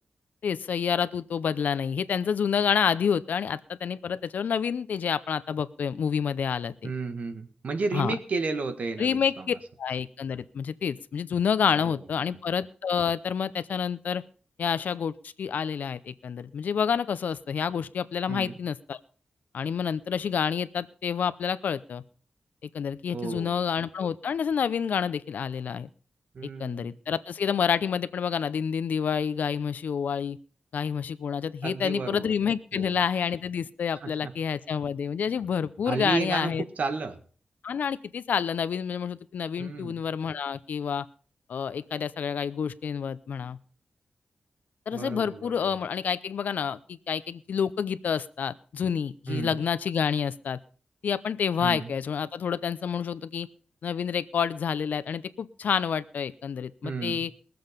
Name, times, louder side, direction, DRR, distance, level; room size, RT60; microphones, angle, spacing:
voice 1, 0.4-6.9 7.9-8.1 9.0-14.2 14.6-19.0 19.5-22.0 22.6-25.9 26.6-30.4 30.7-36.6 37.6-41.1 41.5-43.6 44.9-50.6 51.0-53.5 53.8-57.3, left 7 dB, 80° left, 15 dB, 0.6 m, -28 dB
voice 2, 6.8-9.5 11.7-11.8 18.3-18.6 23.1-23.6 26.3-26.9 31.6-32.3 32.7-33.0 34.0-34.3 35.9-37.2 39.6-40.0 44.9-45.7 49.3-49.6 51.6-51.9 56.8-57.2, right 4 dB, 60° right, 8 dB, 1.7 m, -32 dB
20.0 x 7.8 x 5.2 m, 0.42 s
wide cardioid pair, 115°, 3 cm